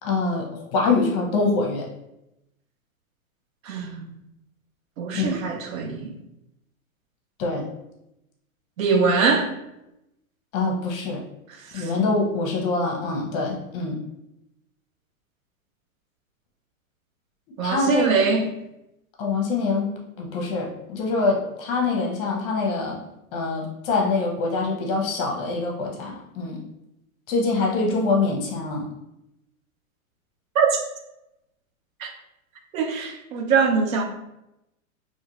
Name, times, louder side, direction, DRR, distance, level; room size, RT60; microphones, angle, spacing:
voice 1, 0.0-1.9 5.1-5.4 7.4-7.7 10.5-11.2 11.7-14.0 17.6-18.1 19.2-19.9 20.2-23.0 23.3-26.6 27.3-28.9, left 3 dB, 40° left, 0 dB, 0.7 m, -24 dB
voice 2, 3.6-4.1 5.0-6.1 8.8-9.5 11.7-11.9 17.6-18.5 30.5-30.8 32.0-32.1 32.7-34.0, right 5 dB, 70° right, 4 dB, 0.7 m, -22 dB
2.6 x 2.4 x 2.9 m, 0.86 s
hypercardioid pair, 130°, 43 cm